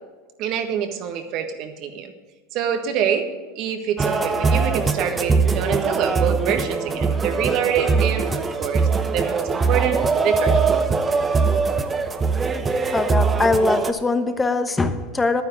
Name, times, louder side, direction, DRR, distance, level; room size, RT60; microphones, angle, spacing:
voice 1, 0.4-2.1 2.5-3.3 3.5-8.3 8.6-8.9 9.1-10.7, right 8 dB, 50° right, 7 dB, 1.6 m, -25 dB
sound 1, 4.0-13.9, right 4 dB, 20° right, 0.8 m, -21 dB
voice 2, 12.9-15.4, left 3 dB, 15° left, 9 dB, 1.0 m, -22 dB
11.5 x 9.5 x 6.5 m, 1.3 s
supercardioid pair, 120°, 0 cm